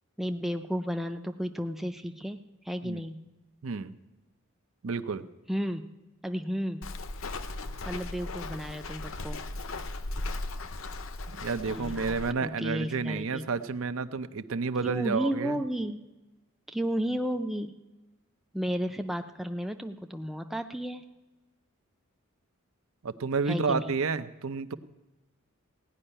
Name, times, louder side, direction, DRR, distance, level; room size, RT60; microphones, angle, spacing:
voice 1, 0.2-3.2 5.5-5.8 6.2-6.9 7.9-9.4 11.6-13.5 14.8-16.0 16.7-17.8 18.5-21.0 23.5-24.0, equal, ahead, 6 dB, 0.5 m, -33 dB
voice 2, 3.6-4.0 4.8-5.3 11.3-15.6 23.0-24.7, right 4 dB, 70° right, 12 dB, 0.6 m, -30 dB
Walk footsteps, 6.8-12.3, left 2 dB, 65° left, 0.7 m, -37 dB
16.5 x 5.5 x 9.9 m, 1.1 s
head